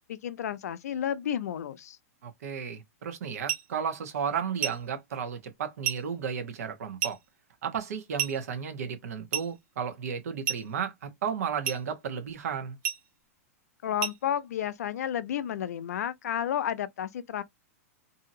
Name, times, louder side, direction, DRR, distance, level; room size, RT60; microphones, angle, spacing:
voice 1, 0.1-2.0 13.8-17.4, left 10 dB, 80° left, 0.4 m, -31 dB
voice 2, 2.2-7.2 7.6-12.8, right 7 dB, 75° right, 1.0 m, -33 dB
sound 1, 3.5-3.7 4.6-4.9 5.8-6.1 7.0-7.2 8.2-8.4 9.3-9.6 10.4-10.7 11.6-11.9 12.8-13.1 14.0-14.2, right 8 dB, 50° right, 1.1 m, -32 dB
2.8 x 2.7 x 2.6 m
hypercardioid pair, 125°, 8 cm